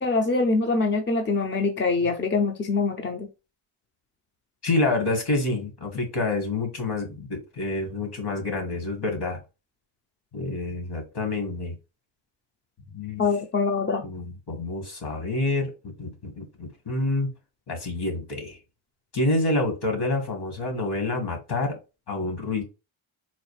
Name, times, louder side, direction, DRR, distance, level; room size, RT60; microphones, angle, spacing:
voice 1, 0.0-3.3 13.2-14.0, left 3 dB, 25° left, 4 dB, 0.4 m, -24 dB
voice 2, 4.6-9.4 10.3-11.7 12.9-13.2 14.0-15.7 16.0-17.3 17.7-18.6 19.1-21.8 22.1-22.6, left 2 dB, 50° left, 4 dB, 1.5 m, -27 dB
4.1 x 2.4 x 3.1 m, 0.28 s
wide cardioid pair, 125°, 49 cm